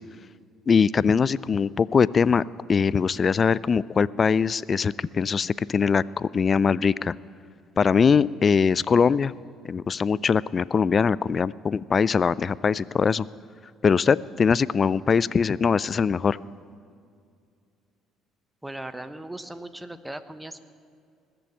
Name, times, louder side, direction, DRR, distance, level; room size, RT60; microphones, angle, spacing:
voice 1, 0.7-2.4 2.7-7.1 7.8-9.3 9.7-13.3 13.8-16.4, left 6 dB, 40° left, 21 dB, 0.3 m, -22 dB
voice 2, 18.6-20.6, right 1 dB, 10° right, 11 dB, 1.0 m, -38 dB
20.5 x 7.0 x 8.7 m, 2.3 s
hypercardioid pair, 55°, 0 cm